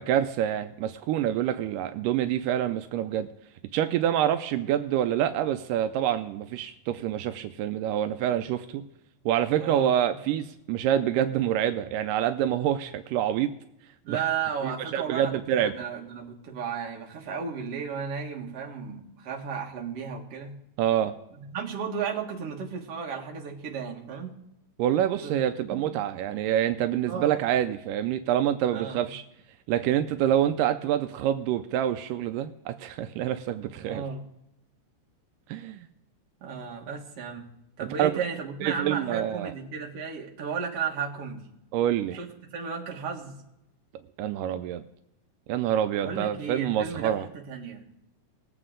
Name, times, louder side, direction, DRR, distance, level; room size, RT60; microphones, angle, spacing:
voice 1, 0.0-3.3 3.7-8.8 9.3-13.5 14.1-14.2 14.6-15.7 20.8-21.1 24.8-29.2 29.7-34.0 35.5-35.9 38.0-38.2 38.6-39.5 41.7-42.2 44.2-44.8 45.5-47.3, right 11 dB, 85° right, 9 dB, 2.2 m, -26 dB
voice 2, 9.6-10.1 14.0-20.6 21.4-24.4 25.1-25.3 25.7-25.9 27.1-27.4 28.7-29.1 33.8-34.3 36.4-37.5 37.8-41.5 42.1-42.3 42.5-43.4 46.0-47.8, right 6 dB, 50° right, 0 dB, 2.4 m, -34 dB
20.5 x 7.9 x 3.7 m, 0.87 s
omnidirectional pair, 3.8 m